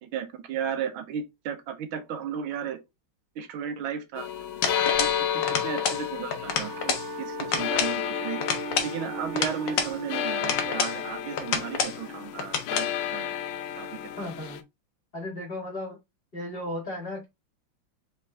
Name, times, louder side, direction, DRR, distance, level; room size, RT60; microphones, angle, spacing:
voice 1, 0.0-2.8 3.3-4.3 4.8-8.4 8.8-13.3 13.8-14.3, right 7 dB, 85° right, 1.6 m, -35 dB
sound 1, 4.2-14.6, left 9 dB, 80° left, 1.4 m, -32 dB
sound 2, 4.6-5.2 5.4-6.0 6.3-7.1 7.4-8.0 8.4-10.0 10.4-11.0 11.4-12.0 12.4-12.9, left 6 dB, 65° left, 1.5 m, -28 dB
voice 2, 5.3-5.7 14.2-14.6 15.1-16.0 16.3-17.3, left 1 dB, 30° left, 2.0 m, -35 dB
Wind instrument woodwind instrument, 6.4-10.8, right 15 dB, 60° right, 1.4 m, -40 dB
4.3 x 3.4 x 3.4 m
omnidirectional pair, 2.2 m